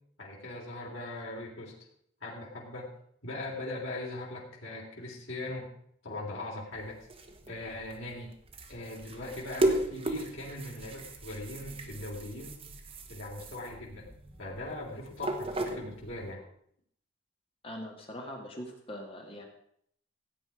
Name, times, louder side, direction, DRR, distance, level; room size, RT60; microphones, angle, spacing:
voice 1, 0.2-1.8 2.2-3.0 3.2-5.7 6.0-7.0 7.4-8.4 8.7-12.8 13.1-14.1 14.4-16.5, left 2 dB, 85° left, -4 dB, 3.6 m, -40 dB
sound 1, 6.7-16.3, right 1 dB, 30° right, 1.4 m, -36 dB
voice 2, 17.6-19.4, equal, 30° left, 2 dB, 1.9 m, -42 dB
16.0 x 8.8 x 5.0 m, 0.67 s
head